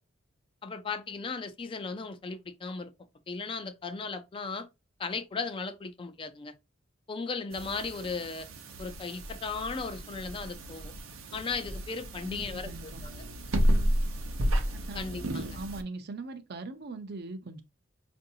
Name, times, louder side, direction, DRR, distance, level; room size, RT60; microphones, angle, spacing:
voice 1, 0.6-2.9 3.3-4.7 5.0-6.5 7.1-8.5 8.8-10.9 11.3-13.2 14.9-15.5, left 4 dB, 25° left, 0.3 m, -36 dB
sound 1, 7.5-15.8, equal, 90° right, 0.7 m, -32 dB
voice 2, 12.2-13.0 14.7-17.6, right 3 dB, 55° right, 0.6 m, -41 dB
4.5 x 2.6 x 2.6 m
head